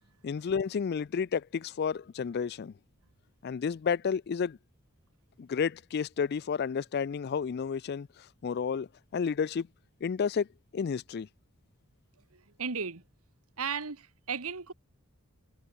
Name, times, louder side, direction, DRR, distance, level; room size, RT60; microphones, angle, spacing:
voice 1, 0.2-2.7 3.4-4.6 5.4-8.1 8.4-8.9 9.1-9.7 10.0-10.5 10.7-11.3, left 6 dB, 45° left, 0.3 m, -31 dB
voice 2, 12.3-13.0 13.6-14.7, right 6 dB, 75° right, 1.5 m, -35 dB
head